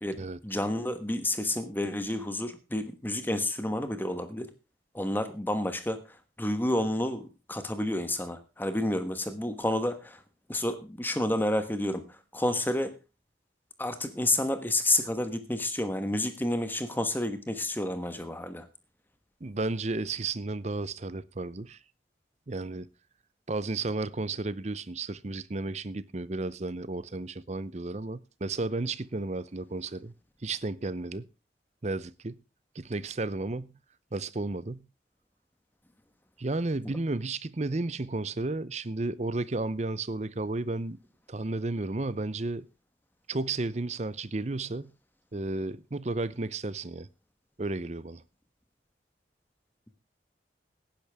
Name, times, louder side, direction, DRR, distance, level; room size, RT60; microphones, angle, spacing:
voice 1, 0.0-4.5 4.9-6.0 6.4-10.2 10.5-12.0 12.3-12.9 13.8-18.6 36.8-36.9, left 1 dB, 10° left, 1.2 m, -30 dB
voice 2, 19.4-21.8 22.5-22.9 23.5-30.1 30.4-31.3 31.8-32.4 32.7-33.8 34.1-34.9 36.4-41.0 41.3-42.7 43.3-44.9 45.3-47.1 47.6-48.2, right 2 dB, 40° right, 0.7 m, -33 dB
17.5 x 10.5 x 3.5 m
head